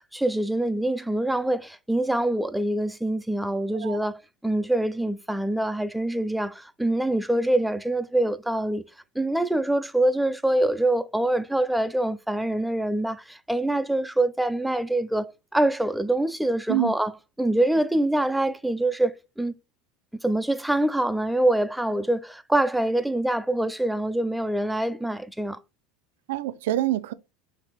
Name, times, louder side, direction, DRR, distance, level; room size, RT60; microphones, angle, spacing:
voice 1, 0.1-8.8 9.2-17.1 17.4-19.5 20.2-25.6, right 1 dB, 5° right, 0.4 m, -25 dB
voice 2, 26.3-27.1, right 14 dB, 80° right, 0.4 m, -26 dB
3.4 x 3.2 x 4.6 m
supercardioid pair, 110°, 0 cm